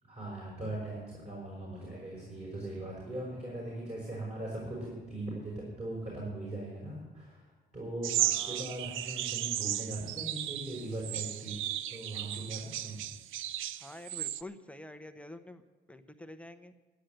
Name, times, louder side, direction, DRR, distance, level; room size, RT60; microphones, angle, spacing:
voice 1, 0.0-7.5 7.7-11.6 11.9-13.0, right 2 dB, 35° right, -4 dB, 5.4 m, -40 dB
sound 1, 8.0-14.4, right 13 dB, 85° right, 0.5 m, -35 dB
voice 2, 8.2-8.6 13.8-15.6 15.9-16.7, left 1 dB, 5° left, 8 dB, 0.8 m, -47 dB
11.5 x 10.5 x 7.8 m, 1.3 s
cardioid pair, 90°, 20 cm